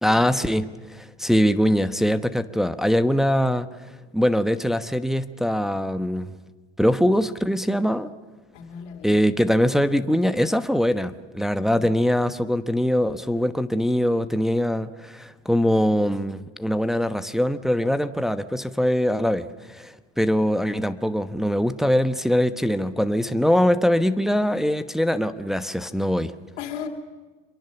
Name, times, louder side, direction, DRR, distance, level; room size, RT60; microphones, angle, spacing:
voice 1, 0.0-3.7 4.1-6.3 6.8-8.1 9.0-26.3, equal, ahead, 9 dB, 1.1 m, -22 dB
voice 2, 8.5-9.2 26.6-26.9, left 8 dB, 90° left, 4 dB, 2.8 m, -36 dB
26.0 x 23.0 x 7.1 m, 1.3 s
supercardioid pair, 90°, 34 cm